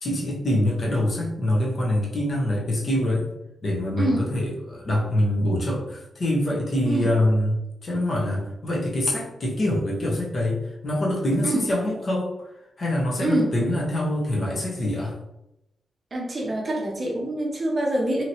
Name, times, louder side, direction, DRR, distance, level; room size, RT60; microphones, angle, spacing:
voice 1, 0.0-3.3 3.6-12.3 12.8-15.2, left 1 dB, 40° left, -3 dB, 0.8 m, -25 dB
voice 2, 4.0-4.3 6.8-7.1 11.4-11.7 13.2-13.5 16.1-18.2, right 1 dB, 30° right, -1 dB, 0.6 m, -25 dB
2.8 x 2.8 x 2.8 m, 0.87 s
wide cardioid pair, 160°, 0 cm